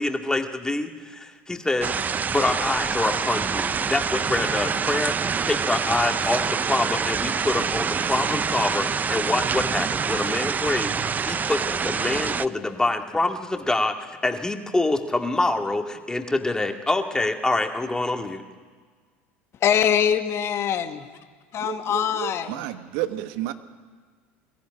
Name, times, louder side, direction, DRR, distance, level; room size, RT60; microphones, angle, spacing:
voice 1, 0.0-1.9 2.3-14.0 14.2-18.4, left 2 dB, 10° left, 4 dB, 2.1 m, -26 dB
sound 1, 1.8-12.5, right 6 dB, 25° right, 0.6 m, -26 dB
voice 2, 19.6-21.1 21.5-22.5, left 9 dB, 45° left, 7 dB, 1.5 m, -23 dB
voice 3, 21.6-22.3 22.6-23.5, right 14 dB, 70° right, 10 dB, 1.3 m, -31 dB
22.0 x 14.5 x 9.9 m, 1.6 s
hypercardioid pair, 85°, 6 cm